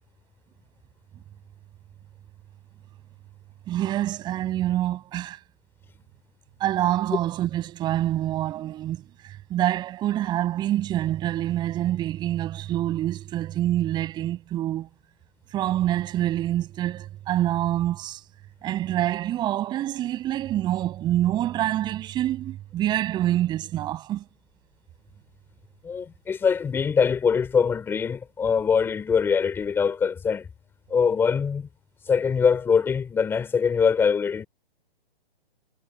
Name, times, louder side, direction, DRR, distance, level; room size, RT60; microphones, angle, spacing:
voice 1, 3.7-5.4 6.6-14.9 15.5-18.2 18.6-24.2, right 13 dB, 15° right, 7.9 m, -26 dB
voice 2, 25.8-30.5 30.9-31.7 32.0-34.5, left 6 dB, 5° left, 4.7 m, -23 dB
hypercardioid pair, 165°, 30 cm